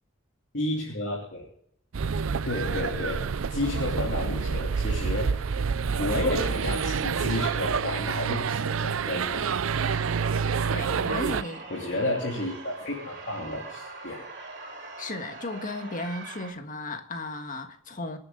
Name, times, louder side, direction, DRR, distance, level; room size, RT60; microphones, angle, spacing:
voice 1, 0.5-1.4 2.4-5.4 6.0-9.6 11.7-14.3, left 1 dB, 60° left, 3.3 m, -31 dB
sound 1, 1.9-11.4, right 5 dB, 80° right, 0.5 m, -28 dB
sound 2, 9.8-16.5, right 3 dB, 60° right, 3.6 m, -42 dB
voice 2, 10.7-11.7 15.0-18.2, left 2 dB, 40° left, 1.7 m, -35 dB
27.0 x 9.3 x 3.9 m
head